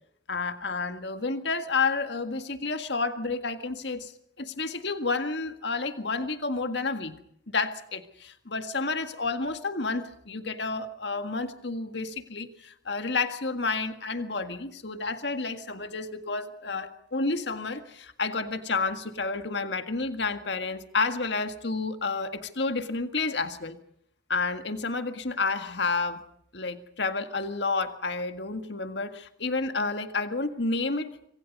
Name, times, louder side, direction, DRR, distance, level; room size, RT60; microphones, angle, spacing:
voice 1, 0.3-4.1 4.4-7.2 7.5-23.8 24.3-26.2 26.5-31.1, left 3 dB, 60° left, 8 dB, 1.8 m, -30 dB
26.5 x 25.0 x 5.4 m, 0.71 s
head